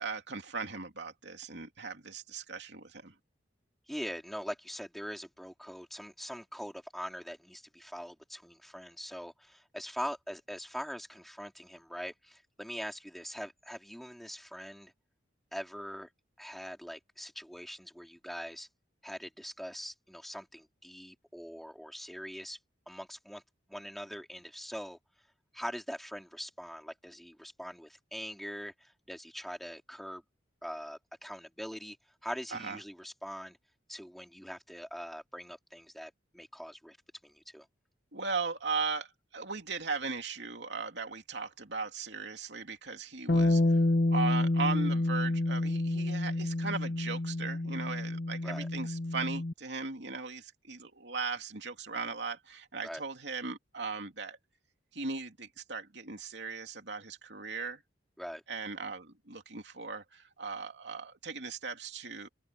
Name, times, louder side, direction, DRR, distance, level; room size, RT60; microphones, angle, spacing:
voice 1, 0.0-3.1 32.5-32.8 38.1-54.4 54.9-57.8 58.5-62.3, right 4 dB, 65° right, 2.9 m, -38 dB
voice 2, 3.9-14.9 15.5-16.1 16.4-18.7 19.0-22.6 22.9-23.4 23.7-25.0 25.5-30.2 30.6-32.0 32.2-33.6 33.9-37.0 37.2-37.7 48.4-48.7 52.8-53.0 58.2-58.4, equal, ahead, 3.7 m, -42 dB
Bass guitar, 43.3-49.5, left 2 dB, 55° left, 1.1 m, -29 dB
open air
head